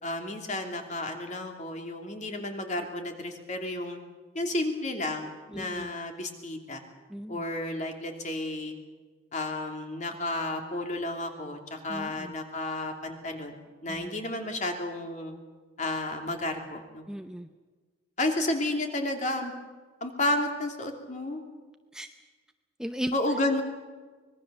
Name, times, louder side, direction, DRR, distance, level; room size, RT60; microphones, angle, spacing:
voice 1, 0.0-4.0 4.3-6.8 7.3-8.8 9.3-13.6 13.8-15.3 15.8-17.1 18.2-19.5 20.0-21.4 23.1-23.6, left 2 dB, 40° left, 4 dB, 2.9 m, -32 dB
voice 2, 5.5-6.0 7.1-7.4 11.9-12.3 13.9-14.1 17.1-17.5 21.9-22.1 22.8-23.2, equal, 5° right, 7 dB, 0.7 m, -36 dB
25.0 x 21.0 x 6.9 m, 1.4 s
head